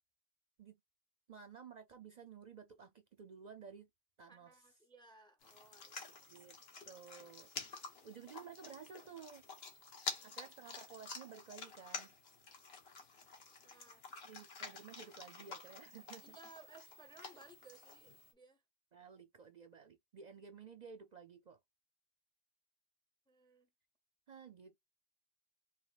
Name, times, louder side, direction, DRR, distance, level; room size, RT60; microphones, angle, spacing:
voice 1, 1.3-3.9 4.2-4.6 6.3-6.6 6.9-7.5 8.0-9.5 10.2-12.1 14.2-16.4 18.9-21.6 24.3-24.8, right 6 dB, 50° right, 0.6 m, -54 dB
voice 2, 4.3-6.5 10.1-10.4 13.6-14.1 16.2-18.6 23.3-23.7, right 3 dB, 5° left, 0.6 m, -61 dB
sound 1, 5.4-18.3, left 4 dB, 75° left, 1.4 m, -49 dB
5.1 x 2.8 x 2.3 m
omnidirectional pair, 1.1 m